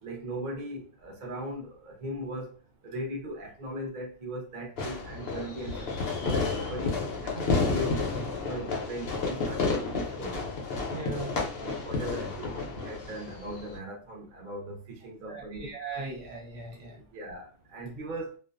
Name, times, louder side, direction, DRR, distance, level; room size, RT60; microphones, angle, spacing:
voice 1, 0.0-2.6 2.8-8.1 8.5-10.4 11.6-15.7 17.1-18.4, equal, 45° right, 0.6 m, -39 dB
Fireworks, 4.8-13.8, left 3 dB, 60° left, 0.6 m, -31 dB
voice 2, 10.9-11.3 15.3-17.0, right 3 dB, 60° right, 1.0 m, -39 dB
2.6 x 2.2 x 2.4 m
omnidirectional pair, 1.7 m